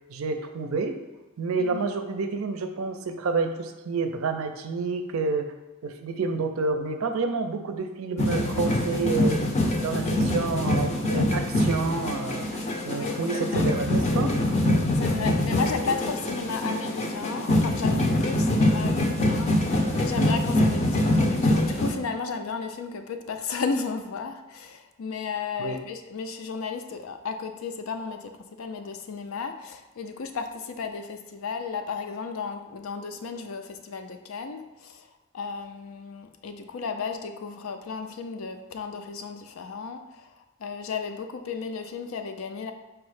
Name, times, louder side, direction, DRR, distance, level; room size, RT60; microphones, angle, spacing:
voice 1, 0.1-1.0 1.4-5.5 5.8-9.5 9.8-14.4 25.6-25.8, right 4 dB, 90° right, 7 dB, 0.5 m, -29 dB
sound 1, 8.2-21.9, left 1 dB, 30° left, 0.5 m, -24 dB
voice 2, 12.9-13.6 15.0-35.1 35.3-42.7, left 5 dB, 85° left, 6 dB, 0.4 m, -34 dB
4.7 x 2.0 x 4.7 m, 1.1 s
head